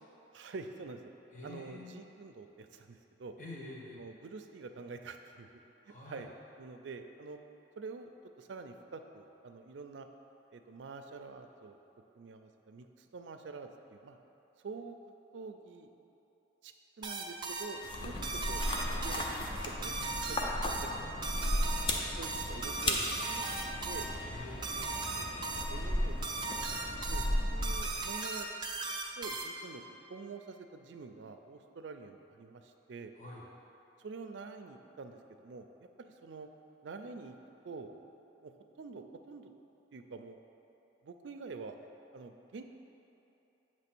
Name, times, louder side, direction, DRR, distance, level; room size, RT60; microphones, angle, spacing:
voice 1, 0.3-1.1 1.4-3.3 3.9-5.5 5.8-6.3 6.6-7.4 7.8-8.1 8.4-10.1 10.5-11.8 12.2-14.2 14.6-15.0 15.3-15.9 16.6-18.6 19.0-19.5 19.8-20.4 20.8-21.0 21.3-21.6 22.0-23.6 23.9-24.1 25.1-25.3 25.6-26.4 27.1-28.5 29.2-29.8 30.1-33.1 34.0-36.5 36.8-37.4 37.6-37.9 38.4-39.5 39.9-40.4 41.0-41.8 42.1-42.6, right 4 dB, 80° right, 6 dB, 0.4 m, -47 dB
voice 2, 1.3-2.0 3.4-4.0 5.8-6.2 17.9-18.1 24.1-25.0 27.0-27.5 33.2-33.4, left 2 dB, 40° left, -4 dB, 1.3 m, -48 dB
sound 1, 17.0-29.8, right 3 dB, 25° right, 0.4 m, -38 dB
sound 2, 17.8-28.2, left 1 dB, 25° left, 0.5 m, -35 dB
8.3 x 3.1 x 6.0 m, 3.0 s
head